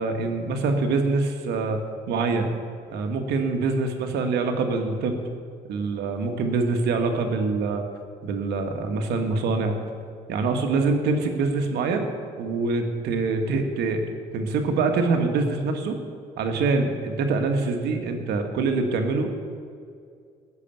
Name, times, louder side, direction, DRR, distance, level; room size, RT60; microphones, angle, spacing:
voice 1, 0.0-1.8 2.1-2.5 2.9-5.2 5.7-7.8 8.2-9.8 10.3-12.1 12.4-16.0 16.4-19.3, right 3 dB, 75° right, 5 dB, 1.8 m, -25 dB
15.0 x 6.9 x 9.0 m, 2.2 s
cardioid pair, 110°, 17 cm